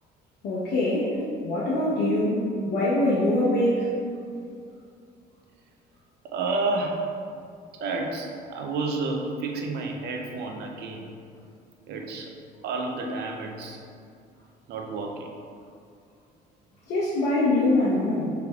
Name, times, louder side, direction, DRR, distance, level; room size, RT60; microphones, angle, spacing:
voice 1, 0.4-3.9 16.9-18.3, left 1 dB, 80° left, -6 dB, 0.8 m, -24 dB
voice 2, 6.3-7.1 7.8-11.1 11.9-12.3 12.6-13.8 14.7-15.3, right 3 dB, 75° right, 2 dB, 0.6 m, -30 dB
6.1 x 3.3 x 2.3 m, 2.4 s
cardioid pair, 110°, 17 cm